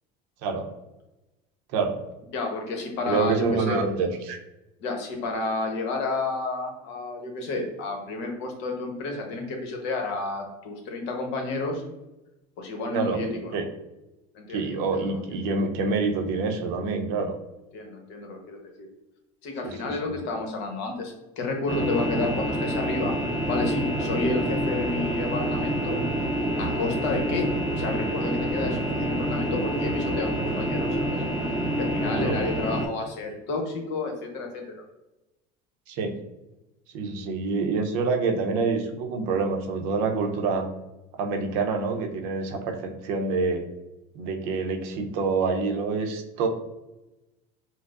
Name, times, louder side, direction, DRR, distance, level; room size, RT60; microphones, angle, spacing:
voice 1, 2.3-3.8 4.8-11.8 12.6-13.6 14.3-15.2 17.7-18.6 19.4-23.1 23.5-25.9 26.6-27.5 27.8-31.2 31.8-34.6, left 3 dB, 65° left, 2 dB, 0.9 m, -31 dB
voice 2, 3.1-4.4 12.9-13.2 13.5-13.6 14.5-17.4 19.6-20.0 32.1-32.4 35.9-36.1 36.9-40.7 41.2-43.6 44.1-46.5, right 4 dB, 75° right, 4 dB, 0.6 m, -27 dB
sound 1, 21.7-32.9, right 1 dB, 20° right, 0.9 m, -27 dB
4.6 x 2.0 x 2.4 m, 0.99 s
supercardioid pair, 110°, 19 cm